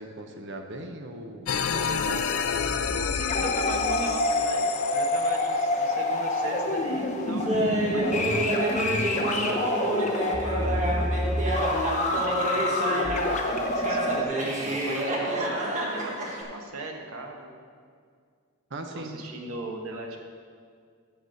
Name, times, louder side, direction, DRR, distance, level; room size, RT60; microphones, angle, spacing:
voice 1, 0.0-2.9 18.7-19.3, right 1 dB, 55° right, 4 dB, 0.9 m, -39 dB
sound 1, 1.5-6.3, left 7 dB, 75° left, 0.5 m, -30 dB
sound 2, 2.5-14.2, left 2 dB, 35° left, 1.0 m, -27 dB
voice 2, 3.0-11.5 12.1-14.3 14.6-17.5 18.9-20.2, right 1 dB, 80° right, 2 dB, 1.2 m, -39 dB
Laughter, 7.4-13.4 13.8-16.4, right 1 dB, 35° right, 1.5 m, -28 dB
8.1 x 7.0 x 6.4 m, 2.1 s
head